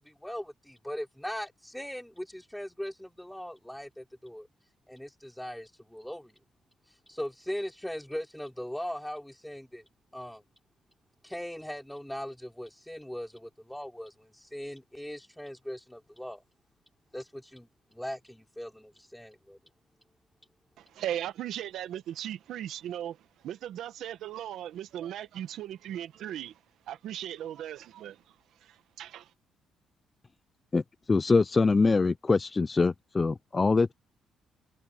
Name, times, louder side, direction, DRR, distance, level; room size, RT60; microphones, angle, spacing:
voice 1, 0.0-4.5 4.9-6.3 7.1-9.8 10.1-10.4 11.2-16.4 17.1-19.6, equal, 5° left, 3.9 m, -39 dB
voice 2, 20.8-26.6 26.9-29.3, right 11 dB, 80° right, 1.5 m, -38 dB
voice 3, 31.1-33.9, left 4 dB, 30° left, 0.5 m, -24 dB
cardioid pair, 90°, 0 cm